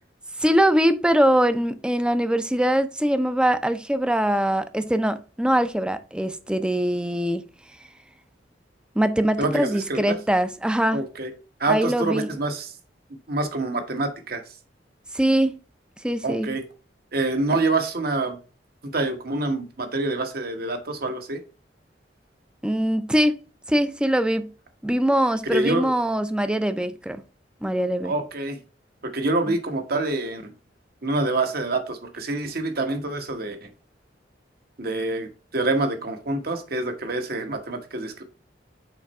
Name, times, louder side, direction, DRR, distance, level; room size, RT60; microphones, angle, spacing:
voice 1, 0.4-7.4 9.0-11.0 11.7-12.3 15.1-15.6 16.0-16.5 22.6-23.4 23.7-24.5 24.8-27.2 27.6-28.1 29.5-29.6, right 1 dB, 5° right, 0.5 m, -22 dB
voice 2, 9.4-10.2 10.9-11.3 11.6-12.7 13.3-14.4 16.2-16.6 17.1-18.4 18.8-21.4 25.5-25.9 28.0-28.6 29.0-30.5 31.0-33.7 34.8-35.3 35.5-38.2, right 2 dB, 60° right, 1.2 m, -26 dB
5.8 x 4.5 x 4.2 m
head